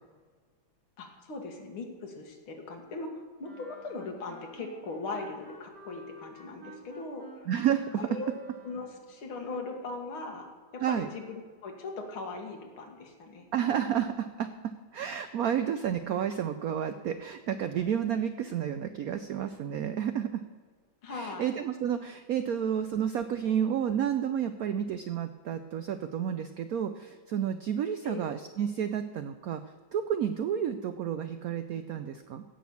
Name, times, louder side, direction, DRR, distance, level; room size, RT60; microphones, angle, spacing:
voice 1, 1.0-7.5 8.0-8.3 8.6-10.5 10.7-13.5 21.0-21.5 28.0-28.2, left 3 dB, 90° left, 3 dB, 2.6 m, -39 dB
Wind instrument woodwind instrument, 3.4-9.1, right 1 dB, 50° right, 3.3 m, -50 dB
voice 2, 7.5-8.1 10.8-11.1 13.5-14.5 14.9-20.4 21.1-29.6 29.9-32.4, right 9 dB, 85° right, 10 dB, 0.8 m, -31 dB
16.5 x 6.4 x 7.1 m, 1.5 s
omnidirectional pair, 2.2 m